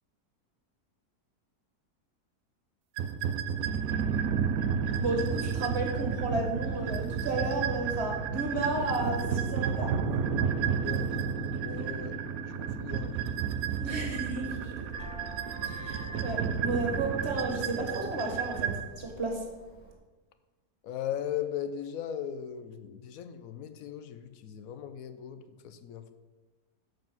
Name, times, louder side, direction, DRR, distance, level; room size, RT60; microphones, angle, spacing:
sound 1, 3.0-18.8, right 7 dB, 70° right, 1.0 m, -31 dB
voice 1, 5.0-10.0 13.8-14.7 15.6-19.4, right 2 dB, 40° right, 2 dB, 1.8 m, -33 dB
voice 2, 11.6-13.2 20.8-26.1, left 9 dB, 70° left, 10 dB, 1.0 m, -38 dB
Vehicle horn car horn honking, 14.9-19.9, equal, 85° left, 2.5 m, -47 dB
7.6 x 5.2 x 5.9 m, 1.2 s
omnidirectional pair, 1.7 m